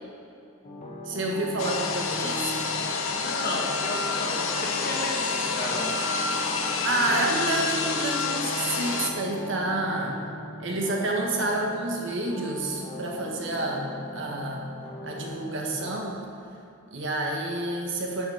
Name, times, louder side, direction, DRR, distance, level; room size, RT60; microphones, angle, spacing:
sound 1, 0.6-15.9, left 1 dB, 30° left, 1.0 m, -40 dB
voice 1, 1.1-2.8 6.8-10.2 10.6-13.9 14.1-14.6 15.0-16.2 16.9-18.3, right 2 dB, 60° right, -1 dB, 1.4 m, -29 dB
sound 2, 1.6-9.1, left 5 dB, 70° left, 0.8 m, -28 dB
voice 2, 3.0-5.9 6.5-7.3, left 1 dB, 45° left, -3 dB, 1.8 m, -34 dB
11.0 x 4.9 x 5.7 m, 2.7 s
head